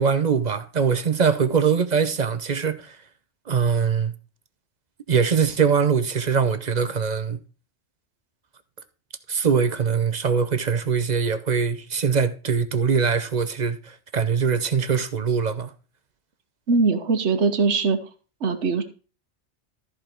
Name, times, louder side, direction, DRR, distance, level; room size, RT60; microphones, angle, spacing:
voice 1, 0.0-3.0 3.5-4.1 5.1-7.4 9.3-15.7, right 6 dB, 40° right, 0.9 m, -22 dB
voice 2, 16.7-18.0 18.4-18.8, right 4 dB, 75° right, 1.4 m, -21 dB
13.5 x 5.2 x 4.5 m
omnidirectional pair, 1.2 m